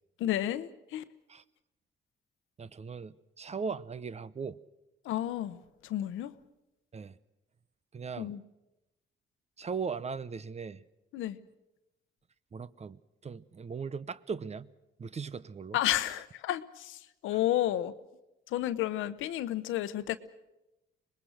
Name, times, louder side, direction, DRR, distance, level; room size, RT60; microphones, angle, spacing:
voice 1, 0.2-1.0 5.0-6.4 8.2-8.4 11.1-11.4 15.7-17.9 18.5-20.2, left 13 dB, 90° left, 1.0 m, -31 dB
voice 2, 2.6-4.6 6.9-7.1 7.9-8.3 9.6-10.8 12.5-14.7 15.0-15.8, right 5 dB, 35° right, 0.8 m, -38 dB
25.0 x 20.5 x 6.5 m
cardioid pair, 90°, 20 cm